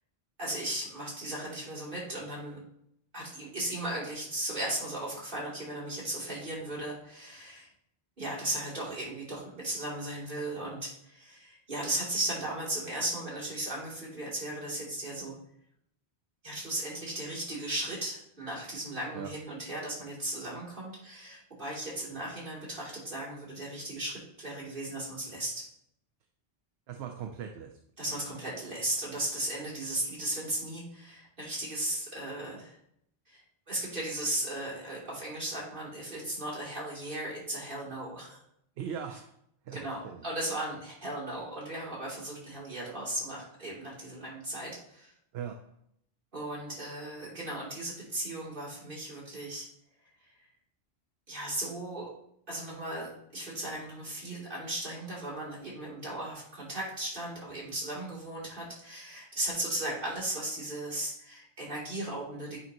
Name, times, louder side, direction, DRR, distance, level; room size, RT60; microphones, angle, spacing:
voice 1, 0.4-2.6 3.1-7.7 8.2-15.3 16.4-25.6 28.0-32.8 33.3-38.4 39.7-45.1 46.3-49.7 50.2-50.3 51.3-52.1 52.5-62.6, right 1 dB, 55° right, -6 dB, 3.1 m, -36 dB
voice 2, 26.9-27.8 38.8-39.3 39.7-40.2 45.3-45.6, right 8 dB, 80° right, 4 dB, 0.9 m, -39 dB
8.6 x 5.3 x 2.9 m, 0.72 s
omnidirectional pair, 1.0 m